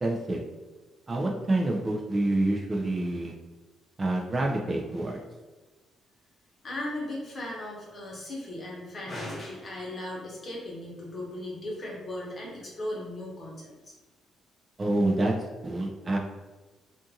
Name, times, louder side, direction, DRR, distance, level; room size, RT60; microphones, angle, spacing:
voice 1, 0.0-0.4 1.1-3.3 4.0-5.2 14.8-15.3 15.6-16.2, right 2 dB, 30° right, 0 dB, 0.4 m, -27 dB
voice 2, 6.6-13.9, left 1 dB, 40° left, -3 dB, 1.0 m, -37 dB
2.5 x 2.5 x 2.7 m, 1.2 s
cardioid pair, 90°, 0 cm